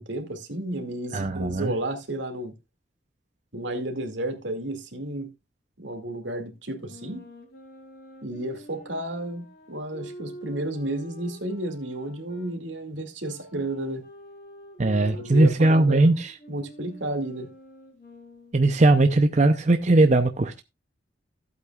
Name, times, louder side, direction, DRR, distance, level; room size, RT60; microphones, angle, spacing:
voice 1, 0.0-2.5 3.5-5.3 5.8-7.3 8.2-14.0 15.1-16.2 16.5-17.5, right 1 dB, 85° right, 2.3 m, -32 dB
voice 2, 1.1-1.7 14.8-16.3 18.5-20.6, right 2 dB, 40° right, 0.6 m, -19 dB
sound 1, 6.7-12.5 13.2-18.7, right 1 dB, 55° left, 4.1 m, -46 dB
15.0 x 8.3 x 2.4 m
head